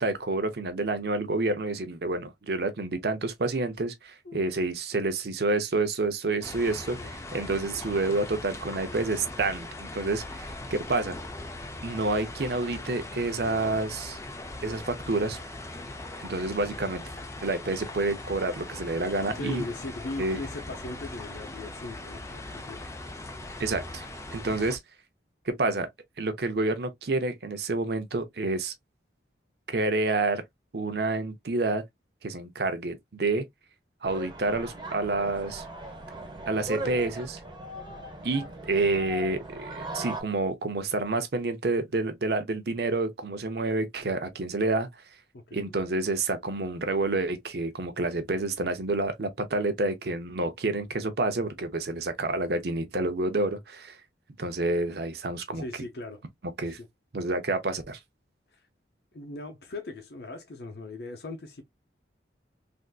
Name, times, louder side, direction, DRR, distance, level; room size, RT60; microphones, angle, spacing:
voice 1, 0.0-11.2 11.8-14.2 14.6-15.4 16.2-17.0 17.4-19.6 20.2-20.4 23.6-24.0 24.3-24.8 25.5-25.9 26.2-28.7 29.7-30.4 30.7-31.8 32.2-33.4 34.0-35.7 36.5-37.4 38.2-44.9 45.5-54.0 54.4-55.6 56.6-56.8 57.1-58.0, right 2 dB, 60° right, 0.6 m, -28 dB
sound 1, 6.4-24.8, left 2 dB, 15° left, 0.5 m, -40 dB
voice 2, 19.3-22.9 45.3-45.7 55.5-56.2 56.6-56.9 58.5-58.6 59.1-61.6, left 2 dB, 60° left, 0.7 m, -39 dB
sound 2, 34.0-40.2, right 1 dB, 25° right, 1.0 m, -39 dB
3.4 x 2.6 x 2.3 m
head